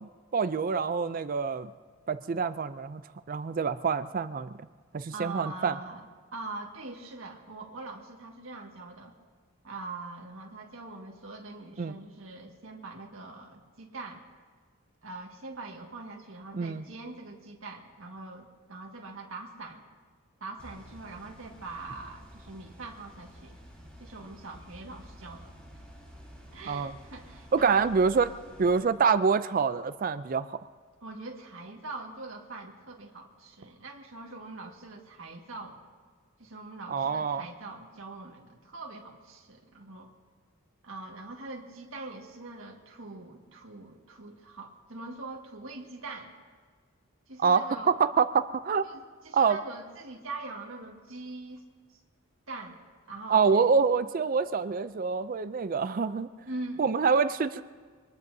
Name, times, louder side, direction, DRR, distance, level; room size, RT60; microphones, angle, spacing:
voice 1, 0.0-1.7 2.1-3.0 3.3-4.5 4.9-5.8 11.8-11.9 16.5-16.8 26.7-26.9 27.5-28.3 28.6-30.6 36.9-37.4 47.4-48.9 49.3-49.6 53.3-56.3 56.8-57.6, right 5 dB, 40° right, 13 dB, 0.4 m, -26 dB
voice 2, 5.1-6.0 6.3-9.1 9.6-14.2 15.0-19.8 20.4-23.6 24.0-25.5 26.5-27.9 31.0-35.8 36.4-40.1 40.8-46.3 47.3-47.9 48.8-51.6 51.9-52.0 52.5-52.8 53.1-53.7 56.5-56.9, right 3 dB, 70° right, 0 dB, 1.7 m, -43 dB
sound 1, 20.6-28.8, equal, 5° left, 3.5 m, -50 dB
24.5 x 19.5 x 2.7 m, 1.5 s
head